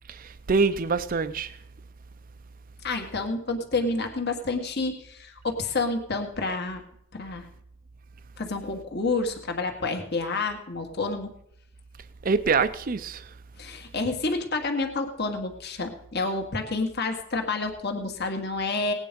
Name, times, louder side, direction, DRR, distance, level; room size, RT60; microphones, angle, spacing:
voice 1, 0.1-1.6 12.2-13.3, right 4 dB, 45° right, 0.5 m, -25 dB
voice 2, 2.8-6.8 7.1-7.5 8.4-11.3 13.6-18.9, left 3 dB, 55° left, 1.7 m, -29 dB
18.0 x 9.2 x 5.2 m
head